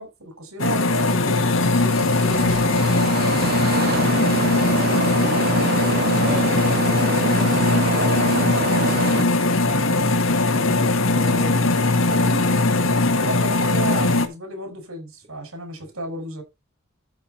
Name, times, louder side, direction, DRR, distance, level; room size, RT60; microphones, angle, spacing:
voice 1, 0.0-3.0 4.1-5.8 7.5-9.3 9.6-10.2 10.5-12.5 13.2-16.4, right 2 dB, 85° right, 6.3 m, -34 dB
sound 1, 0.6-14.3, left 2 dB, 70° left, 1.7 m, -20 dB
sound 2, 0.9-9.2, right 4 dB, 45° right, 0.7 m, -27 dB
voice 2, 5.7-7.3 15.8-15.9, equal, 30° right, 2.2 m, -39 dB
13.5 x 6.6 x 4.4 m
head